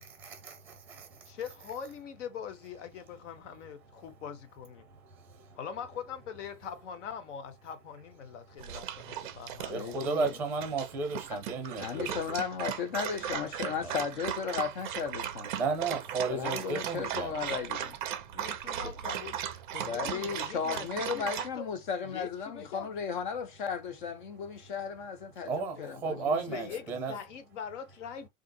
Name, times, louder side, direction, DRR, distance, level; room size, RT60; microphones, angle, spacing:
voice 1, 0.0-1.4 3.3-4.2 4.8-5.6 8.2-12.4 13.8-13.9 15.5-17.4 18.1-18.9 24.3-24.7 25.3-27.2, right 4 dB, 5° right, 0.8 m, -36 dB
voice 2, 1.3-4.9 5.6-9.7 18.3-21.7 22.0-22.9 25.8-26.8 27.1-28.3, left 8 dB, 55° left, 0.9 m, -42 dB
Dog, 8.6-21.5, right 10 dB, 35° right, 0.5 m, -37 dB
voice 3, 9.7-10.3 11.8-15.5 16.3-18.0 19.9-25.5 25.8-26.1, left 6 dB, 35° left, 0.5 m, -35 dB
3.5 x 2.5 x 2.6 m
supercardioid pair, 160°, 43 cm